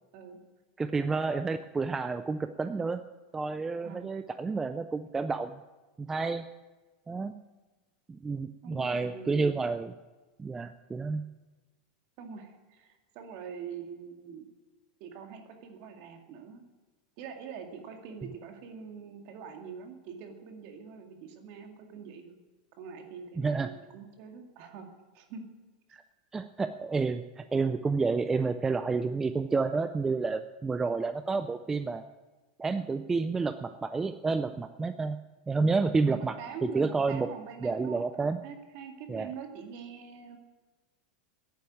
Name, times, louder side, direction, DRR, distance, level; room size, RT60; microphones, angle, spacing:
voice 1, 0.8-3.0 3.3-5.6 6.0-6.4 7.1-7.3 8.1-9.9 10.4-11.2 23.4-23.7 25.9-26.0 26.3-32.0 32.6-35.2 35.5-36.4 36.6-37.3 37.6-38.4 39.1-39.3, right 4 dB, 10° right, 10 dB, 0.4 m, -30 dB
voice 2, 8.6-9.6 12.2-14.5 15.0-16.6 17.2-22.4 22.8-24.9 25.1-25.4 36.1-38.1 38.4-40.4, right 6 dB, 45° right, 4 dB, 2.1 m, -44 dB
10.5 x 9.2 x 9.3 m, 1.2 s
supercardioid pair, 155°, 4 cm